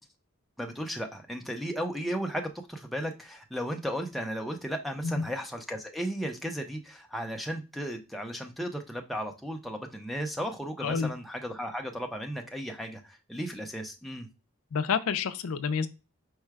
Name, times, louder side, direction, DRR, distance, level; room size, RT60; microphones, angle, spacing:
voice 1, 0.6-14.3, equal, ahead, 0.5 m, -35 dB
voice 2, 10.8-11.1 14.7-15.9, left 6 dB, 80° left, 0.4 m, -29 dB
4.6 x 2.1 x 4.6 m
head